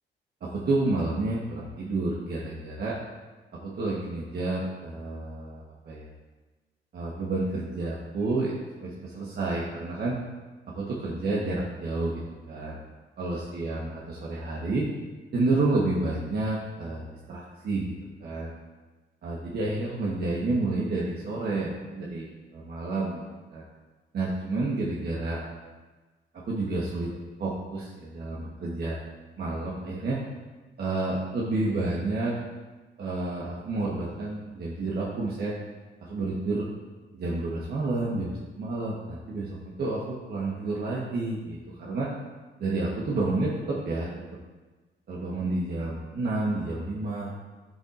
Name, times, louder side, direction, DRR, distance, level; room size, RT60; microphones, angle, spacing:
voice 1, 0.4-2.9 3.5-6.1 6.9-8.5 8.8-10.2 10.7-12.8 13.2-14.9 15.3-17.9 18.2-18.5 19.2-23.2 23.5-23.6 24.1-25.4 26.4-27.1 27.4-29.0 29.4-30.2 30.8-32.4 33.0-35.5 36.0-36.7 37.2-42.1 42.6-44.1 45.1-47.3, right 2 dB, 55° right, -5 dB, 1.2 m, -30 dB
10.0 x 5.5 x 2.5 m, 1.3 s
cardioid pair, 90°, 20 cm